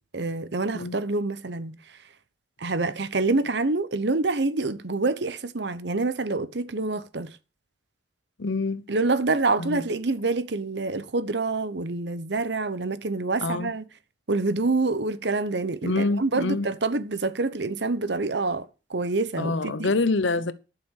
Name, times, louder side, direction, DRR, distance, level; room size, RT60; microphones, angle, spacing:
voice 1, 0.1-1.8 2.6-7.3 8.9-13.8 14.3-19.9, right 3 dB, 65° right, 1.0 m, -26 dB
voice 2, 8.4-8.8 9.6-9.9 13.4-13.7 15.8-16.7 19.4-20.5, left 3 dB, 75° left, 0.9 m, -26 dB
12.0 x 6.8 x 6.4 m
head